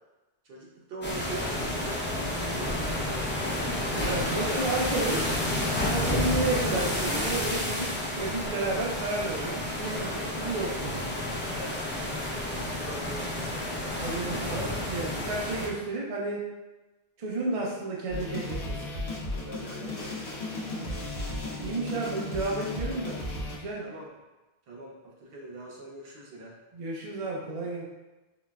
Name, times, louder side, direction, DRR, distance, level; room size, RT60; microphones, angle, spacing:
voice 1, 0.4-4.4 5.9-7.6 9.9-10.3 11.5-11.9 12.4-13.6 14.0-14.5 17.4-17.6 19.4-20.3 23.8-24.1 24.7-26.6 27.6-27.7, right 2 dB, 70° right, -2 dB, 0.8 m, -43 dB
sound 1, 1.0-15.7, left 1 dB, 20° left, 0.3 m, -30 dB
voice 2, 4.0-5.2 5.9-11.1 13.9-16.4 17.2-18.9 20.7-21.1 21.6-23.2 23.5-23.8 26.7-27.8, right 2 dB, 45° right, -3 dB, 0.5 m, -32 dB
sound 2, 18.1-23.6, left 2 dB, 85° left, 0.9 m, -35 dB
3.9 x 2.2 x 2.2 m, 1.1 s
omnidirectional pair, 1.0 m